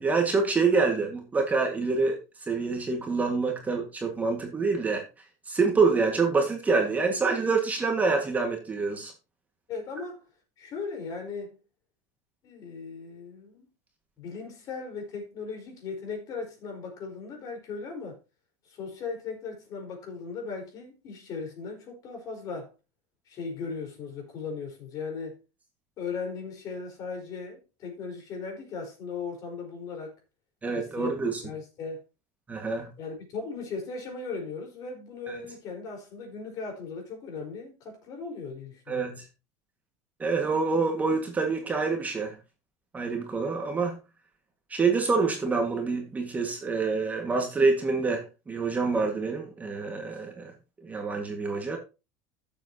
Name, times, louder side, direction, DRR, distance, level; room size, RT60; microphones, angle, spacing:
voice 1, 0.0-2.2 2.5-5.0 5.5-9.1 30.6-31.4 32.5-32.9 35.3-35.4 38.9-39.2 40.2-42.4 42.9-44.0 44.7-50.5 50.8-51.8, right 4 dB, 20° right, 1.8 m, -26 dB
voice 2, 9.7-10.3 10.6-11.6 12.4-13.7 14.2-18.2 18.6-22.7 23.3-25.4 26.0-30.1 30.7-31.1 31.4-32.0 33.0-39.2, left 4 dB, 45° left, 4.6 m, -37 dB
13.5 x 7.3 x 2.9 m
supercardioid pair, 130°, 8 cm